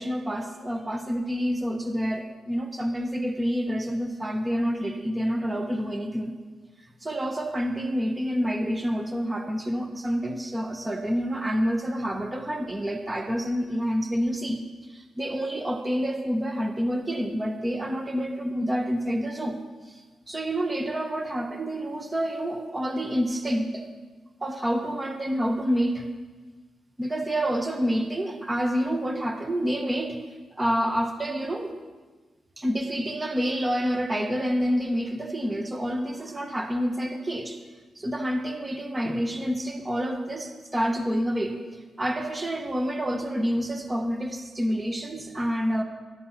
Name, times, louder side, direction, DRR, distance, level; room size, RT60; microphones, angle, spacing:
voice 1, 0.0-6.3 7.0-14.6 14.9-19.6 19.9-20.0 20.3-23.9 24.4-26.1 27.0-30.2 30.6-31.7 32.6-37.6 38.0-41.6 42.0-45.8, equal, 15° right, 5 dB, 1.1 m, -28 dB
13.5 x 12.0 x 5.7 m, 1.3 s
wide cardioid pair, 135°, 0 cm